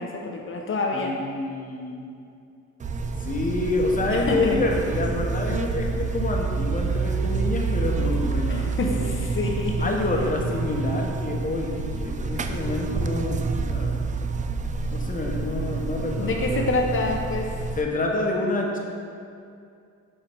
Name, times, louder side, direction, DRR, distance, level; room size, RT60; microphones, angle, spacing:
voice 1, 0.0-1.1 4.1-4.6 8.5-9.9 16.2-17.5, left 3 dB, 45° left, 1 dB, 0.8 m, -27 dB
voice 2, 0.9-2.1 3.2-9.0 9.8-14.0 14.9-16.7 17.8-18.8, left 2 dB, 25° left, 0 dB, 1.0 m, -28 dB
Buzz, 2.8-17.8, right 4 dB, 25° right, 0.4 m, -28 dB
5.8 x 4.4 x 5.2 m, 2.4 s
cardioid pair, 90°, 30 cm